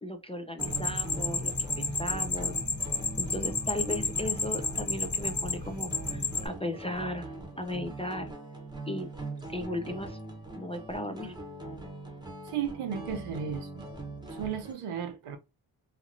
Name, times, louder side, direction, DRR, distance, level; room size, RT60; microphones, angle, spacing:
voice 1, 0.0-2.6 3.2-8.3 8.9-9.1 9.5-10.2 10.6-11.3, left 1 dB, 15° left, 0.3 m, -36 dB
sound 1, 0.6-6.4, left 4 dB, 35° left, 1.2 m, -31 dB
sound 2, 0.6-14.7, right 2 dB, 10° right, 0.9 m, -42 dB
voice 2, 12.4-13.9 14.3-15.4, right 8 dB, 85° right, 0.7 m, -34 dB
3.0 x 2.5 x 2.4 m
wide cardioid pair, 90°, 49 cm